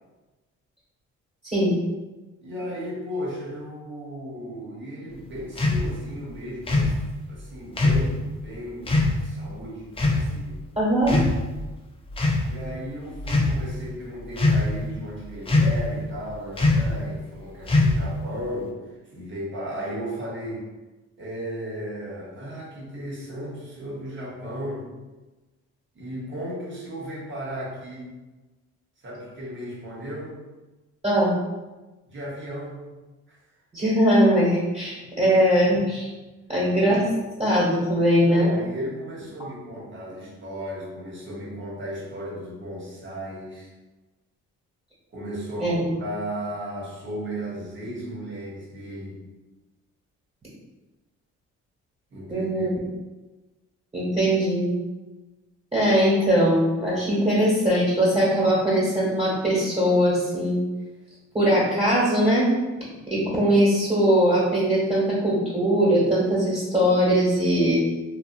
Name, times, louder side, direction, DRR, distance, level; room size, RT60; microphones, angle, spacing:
voice 1, 2.4-7.0 7.3-10.6 12.4-20.7 21.2-24.9 25.9-28.1 29.0-30.4 32.0-32.9 33.3-33.4 35.0-35.1 38.2-43.7 45.1-49.2 52.1-53.0, equal, 40° right, -5 dB, 1.1 m, -35 dB
sound 1, 5.6-5.8 6.7-7.0 7.8-8.1 8.9-9.1 10.0-10.3 11.0-11.6 12.1-12.5 13.2-13.5 14.4-14.8 15.5-15.9 16.6-16.9 17.7-18.1, left 2 dB, 20° left, 0.4 m, -21 dB
voice 2, 10.8-11.2 31.0-31.3 33.7-36.1 36.5-37.0 37.4-38.5 45.6-45.9 52.3-52.7 53.9-54.7 55.7-60.6 61.3-62.5 63.1-67.7, equal, 20° right, -8 dB, 1.4 m, -21 dB
2.7 x 2.4 x 2.5 m, 1.2 s
cardioid pair, 90°, 30 cm